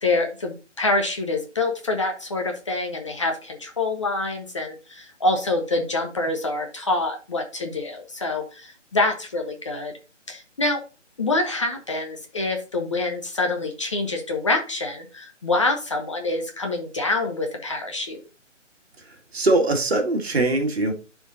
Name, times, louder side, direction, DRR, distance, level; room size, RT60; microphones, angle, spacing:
voice 1, 0.0-9.9 10.3-10.8 11.2-18.2, left 2 dB, 25° left, 3 dB, 0.8 m, -26 dB
voice 2, 19.3-20.9, right 2 dB, 55° right, 3 dB, 2.2 m, -21 dB
11.5 x 4.7 x 2.7 m, 0.31 s
figure-of-eight pair, 155°, 37 cm